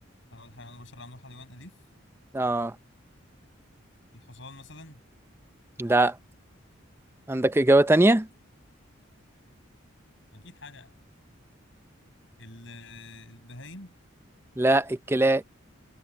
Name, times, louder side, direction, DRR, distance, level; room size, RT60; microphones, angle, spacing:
voice 1, 0.3-1.8 4.1-5.0 10.3-11.1 12.4-13.9, left 2 dB, 65° left, 7.8 m, -46 dB
voice 2, 2.3-2.7 5.8-6.1 7.3-8.3 14.6-15.4, right 2 dB, 10° right, 0.5 m, -21 dB
head